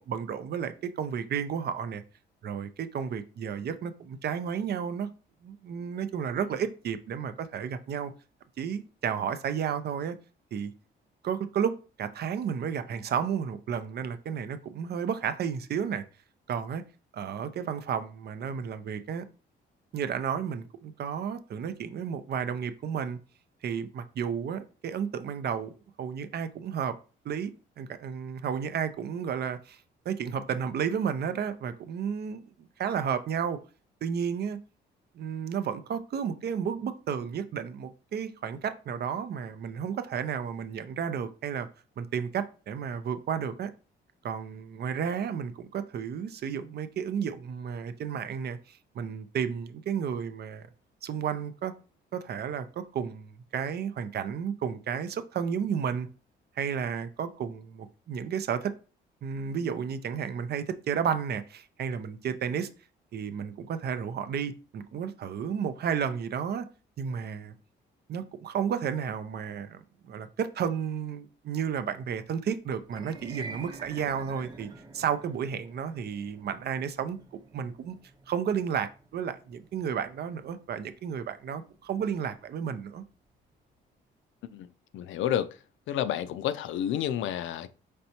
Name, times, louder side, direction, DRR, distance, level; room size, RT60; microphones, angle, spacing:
voice 1, 0.0-2.0 2.4-5.1 5.4-8.1 8.6-10.2 10.5-10.7 11.2-16.0 16.5-16.8 17.1-19.2 19.9-23.2 23.6-27.0 27.2-29.8 30.1-32.5 32.8-33.6 34.0-34.6 35.1-41.7 42.0-43.7 44.2-50.7 51.0-51.7 52.1-56.1 56.6-58.7 59.2-62.7 63.1-66.7 67.0-67.5 68.1-74.7 74.9-77.2 77.5-78.0 78.3-83.0, right 7 dB, 55° right, 0.5 m, -32 dB
sound 1, 72.8-83.1, right 3 dB, 20° right, 0.8 m, -48 dB
voice 2, 84.9-85.5 85.9-87.7, left 10 dB, 75° left, 0.4 m, -30 dB
4.2 x 3.3 x 2.8 m
cardioid pair, 90°, 20 cm